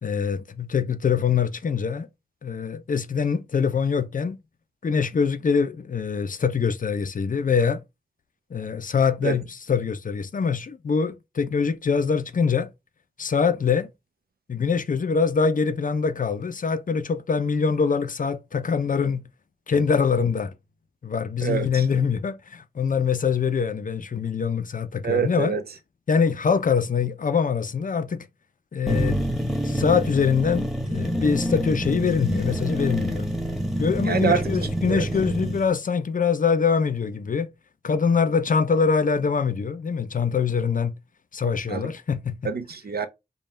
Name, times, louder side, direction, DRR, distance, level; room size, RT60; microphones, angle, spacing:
voice 1, 0.0-2.1 2.4-4.4 4.8-7.8 8.5-12.7 13.2-13.9 14.5-19.2 19.7-20.5 21.0-25.5 26.1-28.3 28.7-29.2 29.6-33.3 33.8-37.5 37.8-40.9 41.3-42.3, left 6 dB, 55° left, 0.5 m, -24 dB
voice 2, 21.4-21.8 25.0-25.6 34.0-34.5 34.9-35.1 41.7-41.8 42.4-43.1, right 6 dB, 80° right, 0.7 m, -25 dB
sound 1, 28.9-35.6, equal, ahead, 1.0 m, -27 dB
5.4 x 2.3 x 4.3 m
wide cardioid pair, 105°, 16 cm